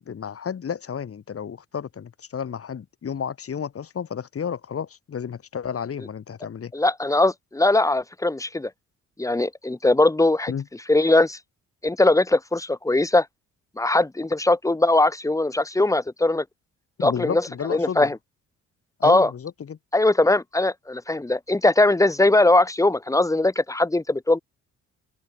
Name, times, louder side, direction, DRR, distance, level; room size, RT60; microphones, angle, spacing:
voice 1, 0.0-6.7 10.5-10.6 17.0-18.1 19.0-19.8, left 7 dB, 50° left, 4.3 m, -32 dB
voice 2, 6.7-8.7 9.2-10.5 10.9-11.4 11.8-13.3 13.8-16.4 17.0-18.2 19.0-19.3 19.9-24.4, left 2 dB, 10° left, 1.1 m, -20 dB
open air
cardioid pair, 90°, 30 cm